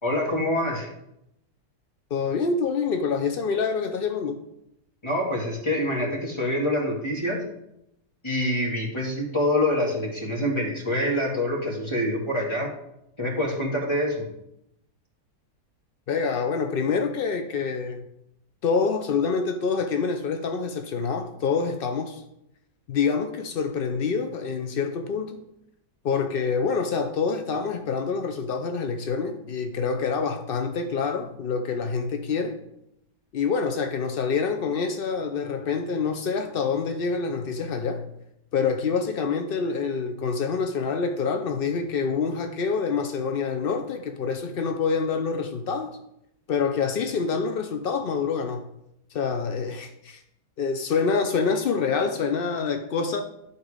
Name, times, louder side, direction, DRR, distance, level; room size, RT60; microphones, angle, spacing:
voice 1, 0.0-0.9 5.0-7.4 8.2-12.7 13.2-14.3, left 1 dB, 15° left, -2 dB, 1.9 m, -26 dB
voice 2, 2.1-4.4 16.1-18.1 18.6-22.2 22.9-25.4 26.0-32.6 33.3-38.1 38.5-46.0 46.5-48.7 49.1-50.2 50.6-53.2, left 5 dB, 75° left, 6 dB, 0.5 m, -26 dB
11.0 x 4.1 x 4.9 m, 0.81 s
omnidirectional pair, 1.8 m